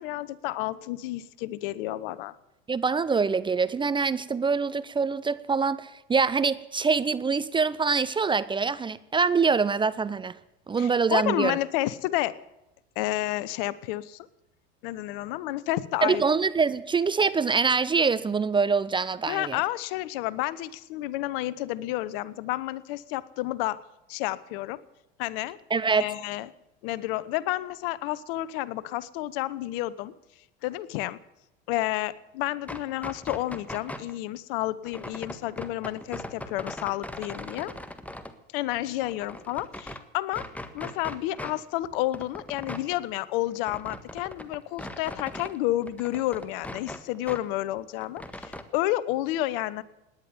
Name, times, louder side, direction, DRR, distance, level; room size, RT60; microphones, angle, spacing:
voice 1, 0.0-2.4 10.8-12.3 13.0-14.3 14.8-16.2 19.3-23.8 24.1-24.8 25.2-25.6 26.0-26.5 26.8-30.1 30.6-31.2 31.7-37.7 38.5-40.5 40.7-49.8, left 16 dB, 60° left, 19 dB, 1.0 m, -30 dB
voice 2, 2.7-10.4 10.7-11.6 16.0-19.6 25.7-26.1, right 5 dB, 15° right, 16 dB, 0.6 m, -24 dB
sound 1, 32.6-34.1 34.8-38.3 38.8-40.0 40.3-41.6 41.8-45.6 45.8-47.4 47.7-48.6, left 1 dB, 5° left, 1.5 m, -40 dB
18.5 x 10.5 x 7.2 m, 0.93 s
hypercardioid pair, 90°, 31 cm